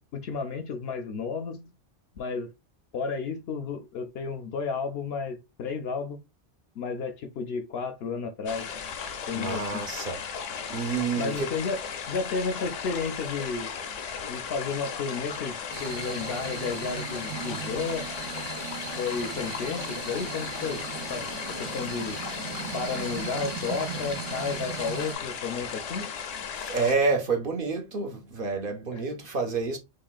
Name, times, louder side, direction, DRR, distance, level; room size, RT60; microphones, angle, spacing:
voice 1, 0.1-1.6 2.2-2.5 2.9-6.2 6.8-8.7 9.3-9.9 11.2-13.7 14.3-18.1 19.0-20.8 21.1-22.2 22.7-26.1 28.9-29.1, left 5 dB, 65° left, 0.7 m, -32 dB
sound 1, 8.5-26.9, left 6 dB, 90° left, 1.0 m, -36 dB
voice 2, 9.3-10.2 10.7-11.5 26.7-29.8, right 4 dB, 50° right, 0.8 m, -28 dB
sound 2, 15.7-25.1, right 8 dB, 80° right, 0.9 m, -38 dB
3.8 x 3.3 x 2.3 m
omnidirectional pair, 1.3 m